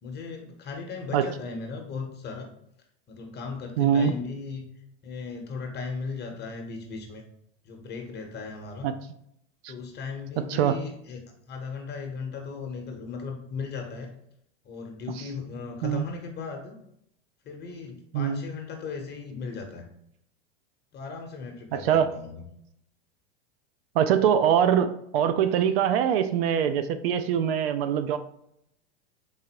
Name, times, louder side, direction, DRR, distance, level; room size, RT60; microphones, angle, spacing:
voice 1, 0.0-2.5 3.1-4.7 5.0-7.2 7.6-8.9 9.7-14.1 14.6-16.7 17.4-19.9 20.9-22.4, left 4 dB, 35° left, 3 dB, 0.9 m, -37 dB
voice 2, 3.8-4.1 8.8-8.9 9.6-9.7 10.5-10.8 15.1-15.3 15.8-16.0 18.1-18.4 21.7-22.1 23.9-28.2, right 9 dB, 75° right, 10 dB, 0.5 m, -23 dB
4.1 x 3.8 x 2.9 m, 0.74 s
hypercardioid pair, 105°, 30 cm